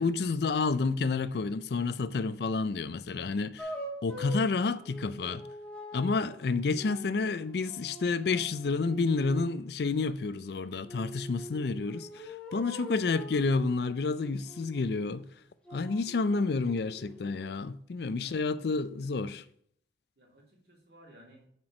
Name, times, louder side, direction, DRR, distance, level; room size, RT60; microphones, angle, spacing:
voice 1, 0.0-3.7 4.0-5.5 5.9-15.3 15.7-19.4, left 4 dB, 60° left, 0.4 m, -30 dB
sound 1, 3.6-9.6 10.8-15.2 15.6-17.5, equal, 5° left, 1.2 m, -44 dB
voice 2, 18.1-18.7 19.0-19.4 20.2-21.4, equal, 60° right, 2.8 m, -58 dB
7.4 x 4.5 x 5.9 m
head